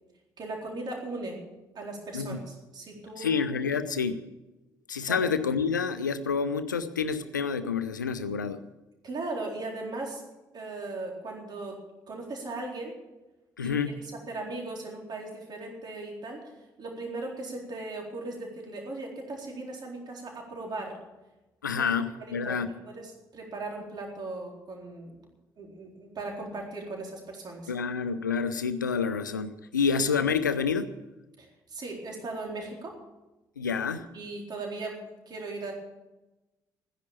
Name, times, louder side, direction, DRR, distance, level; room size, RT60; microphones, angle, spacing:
voice 1, 0.4-1.4 1.7-3.5 5.1-5.3 9.0-10.2 10.5-11.8 12.1-12.9 13.6-13.8 14.3-16.5 16.8-21.0 21.8-21.9 22.2-25.2 25.6-27.7 31.4-33.0 34.1-35.7, right 2 dB, 45° right, 0 dB, 4.0 m, -38 dB
voice 2, 3.2-4.3 4.9-8.6 13.6-14.0 21.6-22.7 27.7-31.0 33.6-34.1, left 5 dB, 85° left, 13 dB, 0.6 m, -28 dB
14.5 x 10.5 x 7.3 m, 1.0 s
figure-of-eight pair, 45°, 10 cm